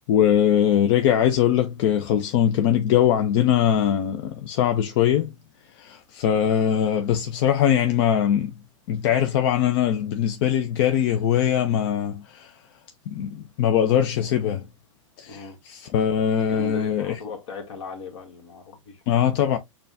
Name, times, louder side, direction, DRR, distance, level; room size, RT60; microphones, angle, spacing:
voice 1, 0.1-5.3 5.7-8.5 8.9-12.6 13.1-14.7 15.2-17.2 19.1-19.6, left 9 dB, 45° left, 0.6 m, -21 dB
voice 2, 15.2-15.6 16.5-19.0, left 4 dB, 65° left, 1.7 m, -37 dB
6.6 x 2.3 x 2.6 m
hypercardioid pair, 130°, 17 cm